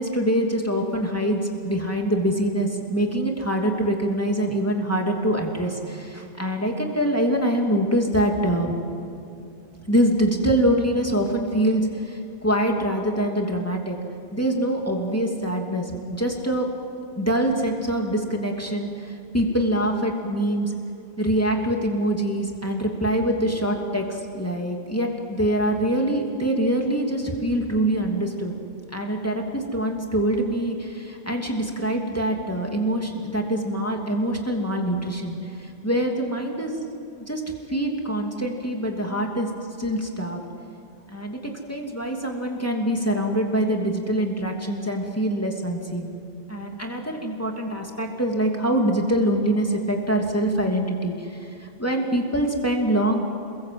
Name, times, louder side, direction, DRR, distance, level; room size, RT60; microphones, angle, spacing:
voice 1, 0.0-8.7 9.9-14.0 14.3-16.7 17.2-20.7 21.2-28.5 28.9-36.7 37.3-37.4 37.7-39.5 39.8-40.4 41.1-46.1 46.5-53.3, right 1 dB, 15° left, 1 dB, 2.8 m, -24 dB
29.0 x 21.0 x 7.8 m, 2.7 s
omnidirectional pair, 1.1 m